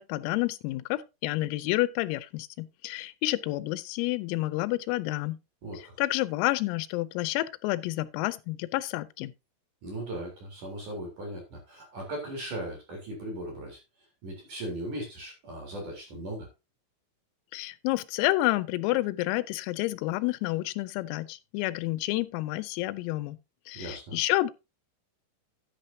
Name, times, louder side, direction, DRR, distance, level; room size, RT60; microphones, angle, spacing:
voice 1, 0.0-5.4 5.7-9.3 17.5-23.4 23.7-24.5, left 18 dB, 90° left, 3.4 m, -29 dB
voice 2, 5.6-6.0 9.8-13.8 14.2-16.5 23.7-24.2, right 1 dB, 40° right, 4.7 m, -38 dB
11.0 x 10.5 x 2.8 m
omnidirectional pair, 6.0 m